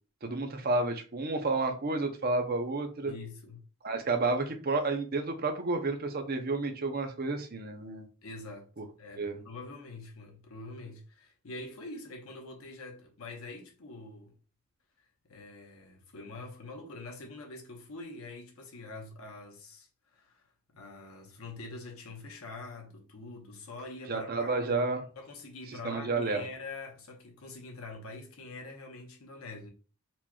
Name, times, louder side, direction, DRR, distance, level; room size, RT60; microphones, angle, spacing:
voice 1, 0.2-3.1 3.8-8.0 8.8-8.9 9.2-9.4 24.1-25.1 25.8-26.4, right 3 dB, 45° right, 0.6 m, -31 dB
voice 2, 3.0-3.6 8.2-8.7 9.0-14.3 15.2-20.4 20.7-24.7 25.2-29.7, left 3 dB, 80° left, 1.0 m, -45 dB
4.3 x 2.9 x 2.3 m
head